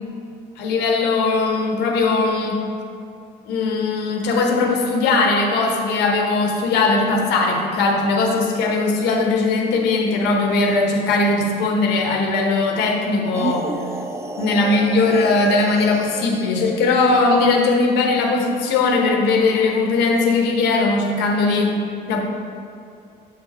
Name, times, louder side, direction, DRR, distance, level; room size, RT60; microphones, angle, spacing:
voice 1, 0.6-2.6 3.4-13.7 14.4-21.8 22.1-22.2, left 3 dB, 80° left, 1 dB, 1.1 m, -19 dB
sound 1, 13.3-17.3, right 3 dB, 15° right, 0.3 m, -31 dB
7.7 x 5.0 x 4.2 m, 2.6 s
cardioid pair, 110°, 17 cm